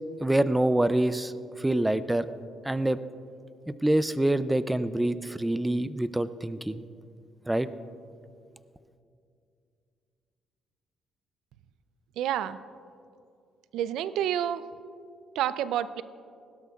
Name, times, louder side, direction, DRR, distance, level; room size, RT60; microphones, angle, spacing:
voice 1, 0.2-1.3 1.6-2.3 2.7-3.0 3.7-6.8 7.5-7.7, right 1 dB, 10° right, 13 dB, 0.4 m, -26 dB
voice 2, 12.2-12.6 13.7-14.6 15.3-16.0, right 10 dB, 85° right, 14 dB, 0.4 m, -29 dB
19.5 x 16.5 x 2.4 m, 2.4 s
cardioid pair, 130°, 0 cm